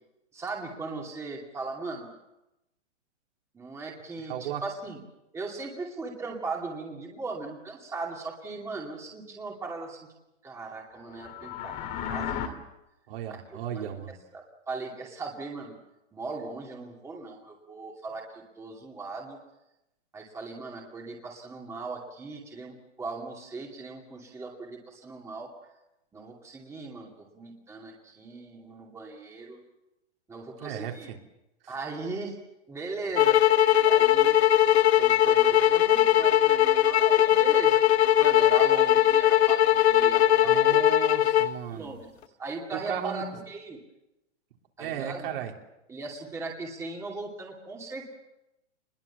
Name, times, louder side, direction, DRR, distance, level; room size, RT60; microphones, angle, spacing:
voice 1, 0.3-2.1 3.5-5.0 5.3-10.1 10.4-11.8 12.1-12.6 13.3-13.4 13.7-13.9 14.3-15.8 16.1-19.4 20.1-25.5 26.1-29.6 30.3-31.1 31.7-32.4 32.7-33.4 33.8-34.4 34.9-37.8 38.2-40.8 41.7-42.1 42.4-43.8 44.8-45.3 45.9-48.2, right 3 dB, 10° right, -1 dB, 2.5 m, -38 dB
voice 2, 4.3-4.6 13.1-14.2 30.6-31.2 31.6-31.7 40.4-41.9 42.7-43.4 44.8-45.5, right 9 dB, 50° right, 2 dB, 3.6 m, -35 dB
sound 1, 11.1-12.5, left 9 dB, 25° left, 2.2 m, -34 dB
sound 2, 33.2-41.5, left 12 dB, 65° left, 1.1 m, -20 dB
27.0 x 21.5 x 7.2 m, 0.92 s
hypercardioid pair, 155°, 36 cm